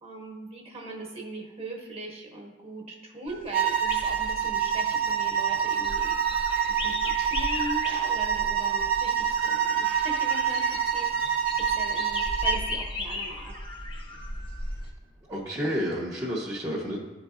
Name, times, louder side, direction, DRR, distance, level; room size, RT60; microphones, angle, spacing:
voice 1, 0.0-6.2 6.6-13.6, right 1 dB, 35° right, 0 dB, 1.1 m, -40 dB
sound 1, 3.3-14.9, left 2 dB, 30° left, 0.8 m, -37 dB
sound 2, 3.5-12.7, right 8 dB, 60° right, 0.7 m, -26 dB
voice 2, 15.3-17.0, equal, 20° right, -5 dB, 0.7 m, -30 dB
11.5 x 3.9 x 2.4 m, 1.2 s
head